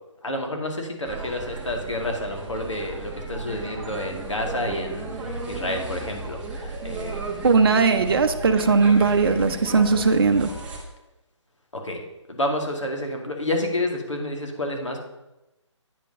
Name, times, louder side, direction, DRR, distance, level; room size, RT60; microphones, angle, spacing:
voice 1, 0.2-7.4 11.7-12.0 12.3-15.0, left 1 dB, 75° left, 2 dB, 2.2 m, -29 dB
sound 1, 1.0-10.8, right 3 dB, 5° right, 0.8 m, -34 dB
voice 2, 7.4-10.5, right 4 dB, 50° right, 7 dB, 0.7 m, -19 dB
9.1 x 5.2 x 5.3 m, 0.97 s
figure-of-eight pair, 145°, 16 cm